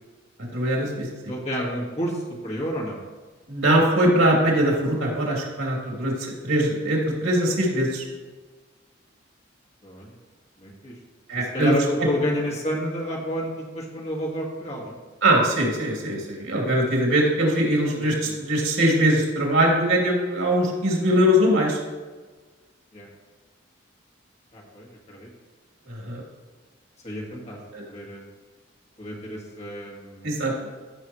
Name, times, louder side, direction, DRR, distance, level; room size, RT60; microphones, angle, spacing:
voice 1, 0.5-1.1 3.5-8.0 11.3-11.7 15.2-21.8 25.9-26.2 27.7-27.8 30.2-30.5, right 1 dB, 85° right, -2 dB, 2.6 m, -21 dB
voice 2, 1.3-3.0 9.8-10.1 10.6-10.9 11.3-14.9 18.0-18.4 22.9-23.1 24.5-25.3 27.0-27.6 27.9-28.2 29.0-30.3, equal, 35° left, -2 dB, 1.6 m, -30 dB
14.0 x 6.2 x 3.0 m, 1.3 s
head